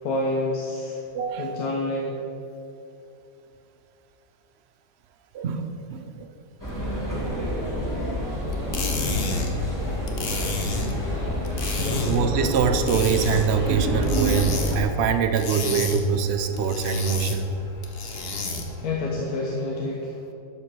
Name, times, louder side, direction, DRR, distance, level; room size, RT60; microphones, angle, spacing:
voice 1, 0.0-1.0 1.4-2.2 11.7-12.1 18.7-20.2, left 2 dB, 60° left, -2 dB, 1.5 m, -28 dB
voice 2, 1.1-1.6 5.3-6.3 12.0-17.5, right 6 dB, 65° right, 8 dB, 0.6 m, -24 dB
sound 1, 6.6-14.8, equal, 10° left, 1.8 m, -28 dB
sound 2, 8.5-18.9, left 3 dB, 40° left, 1.0 m, -32 dB
11.0 x 5.3 x 6.2 m, 2.6 s
omnidirectional pair, 1.9 m